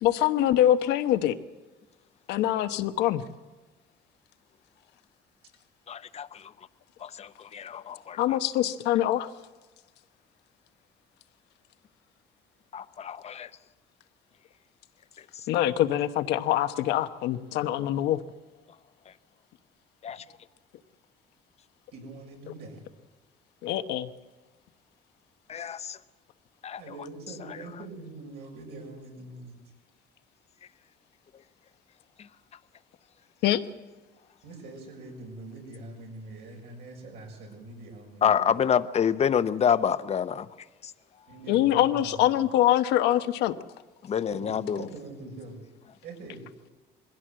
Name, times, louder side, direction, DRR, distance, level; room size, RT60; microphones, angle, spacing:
voice 1, 0.0-1.3 2.3-3.2 8.2-9.3 15.5-18.2 23.6-24.1 33.4-33.6 41.5-43.5, left 12 dB, 85° left, 1.1 m, -24 dB
voice 2, 5.9-6.5 7.0-8.4 12.7-13.5 15.2-15.5 19.1-19.2 20.0-20.2 25.5-26.0 26.6-26.9 32.2-32.3 38.2-40.5 40.8-40.9 44.0-44.9, left 8 dB, 40° left, 0.8 m, -28 dB
voice 3, 21.9-22.8 26.8-29.5 34.4-38.5 41.3-42.4 44.3-45.6 46.0-46.4, right 2 dB, 80° right, 6.7 m, -43 dB
21.5 x 16.0 x 7.7 m
cardioid pair, 110°, 17 cm